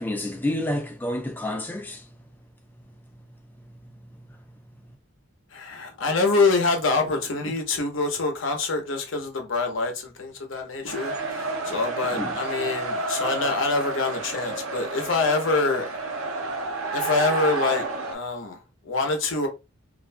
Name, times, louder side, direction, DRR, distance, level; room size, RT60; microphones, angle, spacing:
voice 1, 0.0-2.1 3.7-3.8 4.2-4.4 12.2-12.4, left 1 dB, 10° left, 0.3 m, -29 dB
voice 2, 5.5-16.1 16.9-19.5, left 3 dB, 65° left, 0.7 m, -25 dB
sound 1, 10.9-18.1, right 3 dB, 85° right, 0.6 m, -30 dB
2.4 x 2.2 x 2.5 m
head